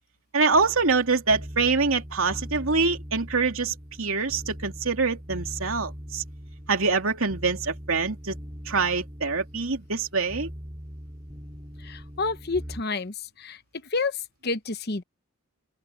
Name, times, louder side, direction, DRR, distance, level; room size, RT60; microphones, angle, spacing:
voice 1, 0.3-6.2 6.7-8.4 8.6-10.5, right 4 dB, 75° right, 2.7 m, -25 dB
sound 1, 0.5-12.8, equal, 20° right, 2.3 m, -41 dB
voice 2, 11.8-13.6 13.9-15.0, left 3 dB, 50° left, 1.0 m, -30 dB
open air
head